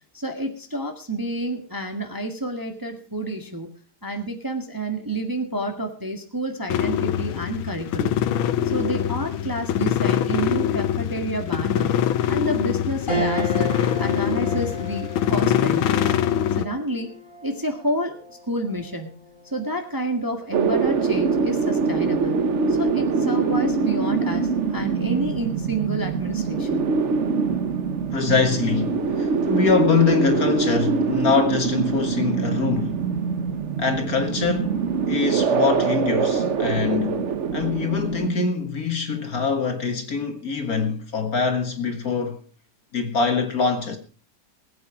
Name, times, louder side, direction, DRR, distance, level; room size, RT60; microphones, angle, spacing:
voice 1, 0.1-3.7 4.0-8.2 8.6-12.0 12.3-13.7 14.0-16.0 16.6-17.1 17.4-18.2 18.5-19.1 19.5-22.4 22.7-26.9, right 1 dB, 10° right, 1.6 m, -29 dB
sound 1, 6.7-16.7, left 10 dB, 80° left, 1.6 m, -23 dB
sound 2, 13.1-22.7 23.2-23.3 24.6-25.0, equal, 25° left, 6.4 m, -35 dB
sound 3, 20.5-38.3, right 5 dB, 45° right, 1.0 m, -24 dB
voice 2, 28.1-33.0 33.8-42.4 42.9-44.0, left 5 dB, 45° left, 2.0 m, -24 dB
20.0 x 8.7 x 4.9 m
omnidirectional pair, 2.2 m